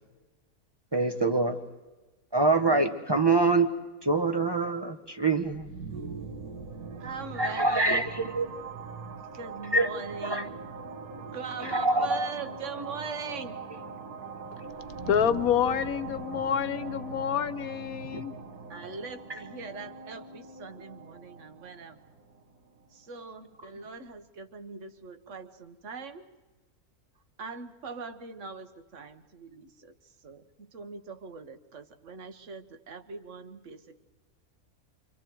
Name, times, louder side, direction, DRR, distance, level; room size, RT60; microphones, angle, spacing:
voice 1, 0.9-1.6 2.3-3.7 4.0-5.7 7.4-8.5 9.7-9.9 10.2-10.4 11.6-12.3 18.1-18.2, right 3 dB, 20° right, 0.9 m, -25 dB
sound 1, 5.4-23.1, right 4 dB, 85° right, 1.9 m, -41 dB
voice 2, 7.0-8.0 9.3-10.5 11.3-13.6 18.7-22.0 22.9-26.3 27.4-29.9 30.2-34.0, right 4 dB, 55° right, 1.5 m, -41 dB
voice 3, 15.1-18.4, left 8 dB, 70° left, 1.3 m, -27 dB
29.0 x 25.5 x 4.6 m
omnidirectional pair, 1.6 m